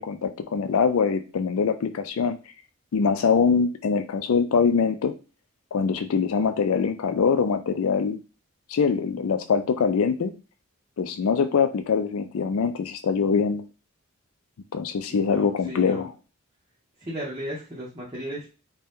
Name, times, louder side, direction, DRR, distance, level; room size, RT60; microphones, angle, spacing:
voice 1, 0.0-2.4 2.9-5.1 5.7-8.2 8.7-10.3 11.0-13.6 14.7-16.1, left 5 dB, 80° left, 9 dB, 0.4 m, -23 dB
voice 2, 15.1-16.0 17.1-18.5, equal, 20° right, -7 dB, 0.7 m, -35 dB
2.7 x 2.2 x 3.4 m, 0.32 s
head